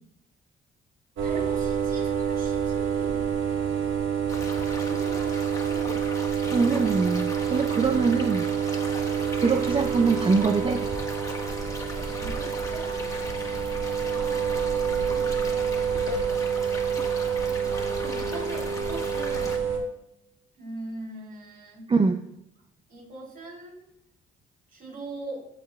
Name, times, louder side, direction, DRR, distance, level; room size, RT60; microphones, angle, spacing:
voice 1, 1.2-3.3 4.8-6.0 12.0-13.0 14.1-15.5 17.3-19.6 20.6-21.9 22.9-23.9 24.7-25.4, right 2 dB, 45° right, -2 dB, 3.5 m, -41 dB
sound 1, 1.2-19.8, right 7 dB, 80° right, 1.7 m, -27 dB
sound 2, 4.3-19.6, left 2 dB, 15° left, 1.6 m, -39 dB
voice 2, 6.5-8.4 9.3-10.9 21.9-22.2, right 4 dB, 25° right, 6 dB, 0.5 m, -23 dB
15.0 x 5.4 x 2.4 m, 0.79 s
cardioid pair, 90°, 20 cm